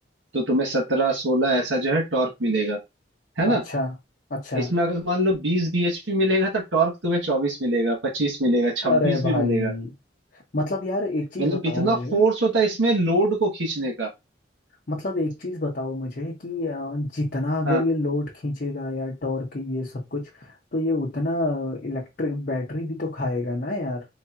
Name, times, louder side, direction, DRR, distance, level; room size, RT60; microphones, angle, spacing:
voice 1, 0.3-2.8 3.4-3.6 4.5-9.7 11.4-14.1 17.6-17.8, right 1 dB, 90° right, 1.4 m, -23 dB
voice 2, 3.4-3.9 4.3-4.7 8.8-9.9 10.3-12.2 14.9-24.1, left 2 dB, 50° left, 0.7 m, -27 dB
3.9 x 3.1 x 2.5 m
head